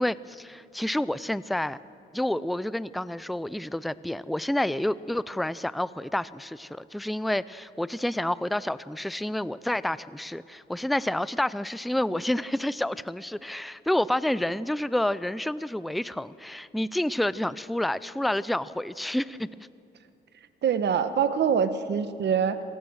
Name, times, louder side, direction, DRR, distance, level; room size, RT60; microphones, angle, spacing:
voice 1, 0.0-1.8 2.1-19.5, left 1 dB, ahead, 17 dB, 0.4 m, -29 dB
voice 2, 20.6-22.6, right 7 dB, 60° right, 11 dB, 1.3 m, -24 dB
26.5 x 18.0 x 6.4 m, 2.7 s
cardioid pair, 90°, 20 cm